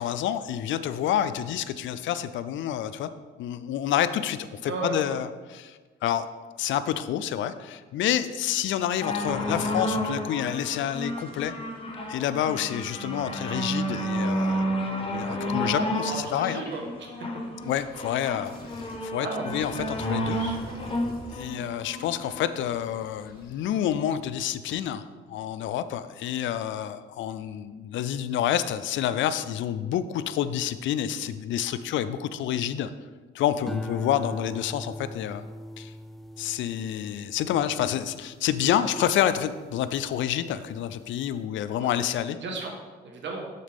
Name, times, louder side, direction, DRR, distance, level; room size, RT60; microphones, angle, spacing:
voice 1, 0.0-3.1 3.4-6.3 6.6-11.5 12.1-14.7 15.1-16.6 17.6-18.5 19.0-20.4 21.3-32.9 33.3-35.4 35.8-35.9 36.4-42.4, left 10 dB, 70° left, 13 dB, 0.4 m, -28 dB
voice 2, 4.6-4.9 16.0-17.1 19.2-19.6 20.4-20.6 41.8-41.9 42.4-42.7 43.0-43.4, right 3 dB, 65° right, 1 dB, 1.5 m, -34 dB
sound 1, 9.0-22.6 23.3-23.4, equal, 25° left, 1.2 m, -31 dB
sound 2, 16.2-16.9 17.4-17.9 18.4-19.0 19.4-23.8, left 1 dB, 50° left, 1.9 m, -46 dB
sound 3, 33.7-40.2 40.7-41.1, left 1 dB, ahead, 0.3 m, -41 dB
6.6 x 6.6 x 3.6 m, 1.3 s
cardioid pair, 90°, 20 cm